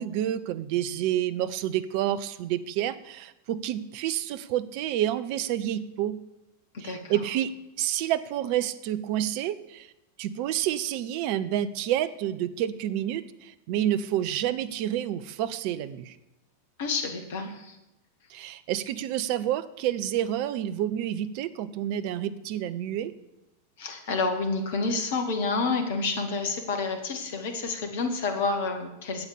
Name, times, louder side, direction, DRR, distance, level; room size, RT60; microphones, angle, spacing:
voice 1, 0.0-6.2 6.8-7.5 7.8-9.9 10.2-16.2 18.3-23.1, right 11 dB, 45° right, 13 dB, 0.7 m, -29 dB
voice 2, 16.8-17.8 23.8-29.3, left 4 dB, 55° left, 6 dB, 2.0 m, -29 dB
11.5 x 8.2 x 6.9 m, 0.91 s
figure-of-eight pair, 90°, 0 cm